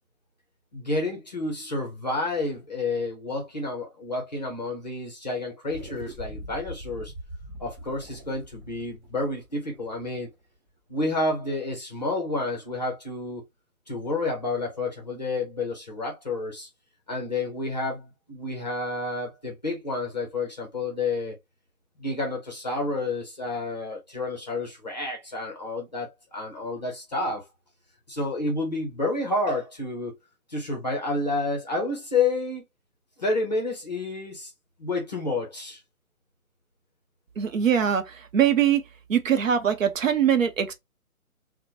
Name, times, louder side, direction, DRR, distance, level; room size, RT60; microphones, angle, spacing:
voice 1, 0.7-7.1 7.6-10.3 10.9-13.4 13.9-16.7 17.1-21.4 22.0-27.4 28.1-30.1 30.5-32.6 33.2-34.5 34.8-35.8, left 2 dB, 30° left, 0.7 m, -30 dB
sound 1, 5.7-10.4, right 1 dB, 30° right, 1.2 m, -42 dB
voice 2, 37.4-38.0 38.3-38.8 39.1-40.7, right 8 dB, 65° right, 0.7 m, -22 dB
2.9 x 2.1 x 2.6 m
hypercardioid pair, 160°, 43 cm